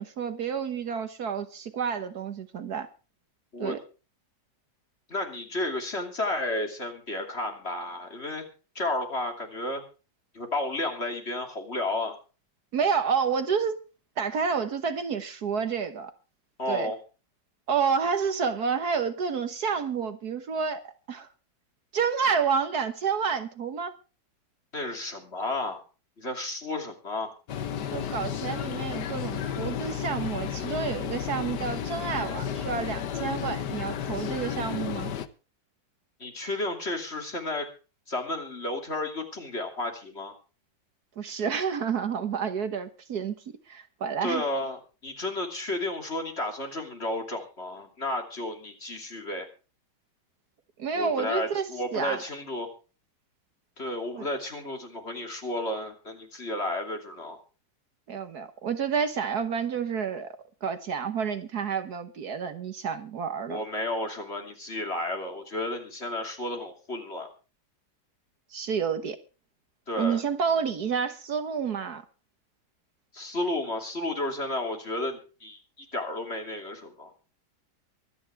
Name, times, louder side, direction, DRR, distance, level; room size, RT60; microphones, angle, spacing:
voice 1, 0.0-2.9 3.6-3.8 12.7-13.8 14.2-16.1 16.7-16.9 17.7-20.8 21.1-21.3 21.9-23.9 27.9-35.1 41.2-43.3 43.7-44.4 50.8-52.2 54.1-54.3 58.1-60.3 60.6-63.6 68.5-69.2 70.0-72.0, right 6 dB, 60° right, 1.6 m, -29 dB
voice 2, 5.1-8.4 8.7-9.8 10.3-12.2 16.6-17.0 24.7-25.8 26.2-27.3 36.2-37.7 38.1-40.3 44.2-49.5 50.9-52.7 53.8-57.4 63.5-67.3 69.9-70.2 73.1-77.1, left 2 dB, 35° left, 3.0 m, -32 dB
sound 1, 27.5-35.3, left 8 dB, 70° left, 1.6 m, -32 dB
24.0 x 9.8 x 3.4 m
omnidirectional pair, 1.9 m